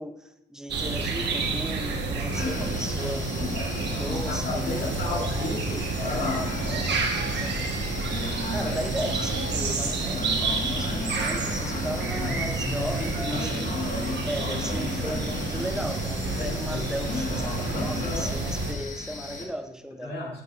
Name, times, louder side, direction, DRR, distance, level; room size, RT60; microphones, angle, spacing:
voice 1, 0.0-3.3 4.0-5.6 6.6-7.6 8.5-13.6 14.3-20.2, equal, 5° right, 0.6 m, -36 dB
sound 1, 0.7-18.7, right 3 dB, 60° right, 1.3 m, -29 dB
sound 2, 2.3-19.4, left 3 dB, 40° left, 1.3 m, -35 dB
voice 2, 2.7-3.2 4.3-6.6 12.2-13.7 16.3-16.9 17.6-18.3 20.0-20.4, left 2 dB, 55° left, 2.1 m, -34 dB
sound 3, 4.5-9.6, right 4 dB, 80° right, 1.3 m, -44 dB
9.3 x 6.9 x 2.5 m
cardioid pair, 90°, 20 cm